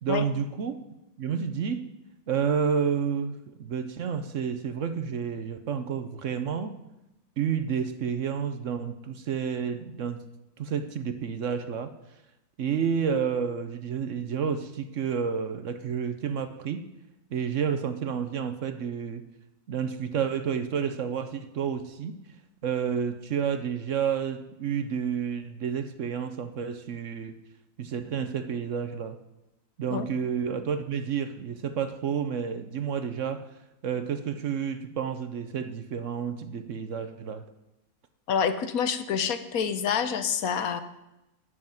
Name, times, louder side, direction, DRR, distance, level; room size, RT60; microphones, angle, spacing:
voice 1, 0.0-0.8 1.2-1.9 2.3-6.8 7.4-10.2 10.6-11.9 12.6-16.8 17.3-19.2 19.7-22.1 22.6-27.3 27.8-29.2 29.8-33.5 33.8-37.4, right 7 dB, 60° right, 10 dB, 1.0 m, -30 dB
voice 2, 38.3-40.8, left 7 dB, 65° left, 11 dB, 1.3 m, -27 dB
13.0 x 6.5 x 9.3 m, 0.92 s
omnidirectional pair, 1.7 m